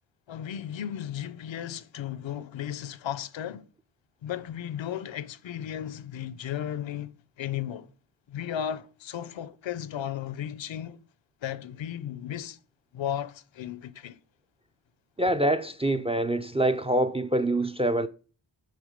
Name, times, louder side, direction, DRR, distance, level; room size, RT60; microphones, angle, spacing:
voice 1, 0.3-3.6 4.2-7.9 8.3-11.0 11.4-12.6 12.9-14.2, left 10 dB, 70° left, 0.6 m, -35 dB
voice 2, 15.2-18.1, right 1 dB, 15° right, 0.4 m, -25 dB
6.7 x 3.5 x 5.1 m
cardioid pair, 60°, 47 cm